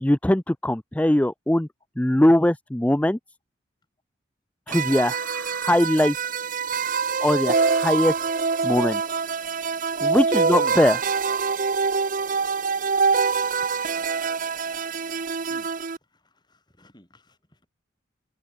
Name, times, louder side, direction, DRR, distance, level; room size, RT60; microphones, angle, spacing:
voice 1, 0.0-1.7 2.0-3.2 4.7-6.3 7.2-8.2 8.6-9.0 10.0-11.0, left 1 dB, 5° left, 0.4 m, -21 dB
sound 1, 4.7-16.0, right 5 dB, 45° right, 0.7 m, -25 dB
voice 2, 16.1-17.7, equal, 25° left, 7.2 m, -48 dB
open air
head